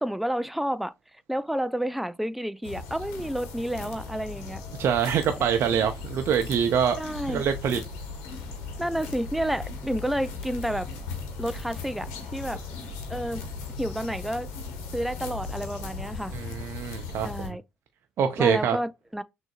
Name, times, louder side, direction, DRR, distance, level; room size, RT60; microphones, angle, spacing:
voice 1, 0.0-0.9 1.3-4.6 7.0-7.4 8.8-10.9 11.4-12.6 13.1-13.4 13.8-14.5 14.9-16.4 17.2-17.6 18.4-19.2, equal, 5° right, 0.4 m, -30 dB
sound 1, 2.6-17.5, left 4 dB, 75° left, 1.1 m, -38 dB
voice 2, 4.8-7.8 16.3-17.6 18.2-18.8, right 8 dB, 60° right, 0.5 m, -25 dB
6.1 x 2.7 x 2.3 m
hypercardioid pair, 50°, 5 cm